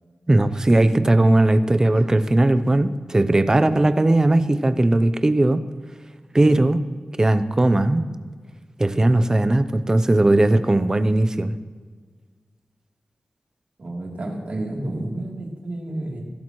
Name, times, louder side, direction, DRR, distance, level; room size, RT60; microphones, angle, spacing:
voice 1, 0.3-5.6 6.3-6.8 7.2-8.0 8.8-11.5, right 2 dB, 20° right, 11 dB, 0.7 m, -18 dB
voice 2, 13.8-16.2, right 1 dB, 55° right, -2 dB, 3.3 m, -30 dB
22.0 x 12.0 x 3.1 m, 1.5 s
wide cardioid pair, 130°, 3 cm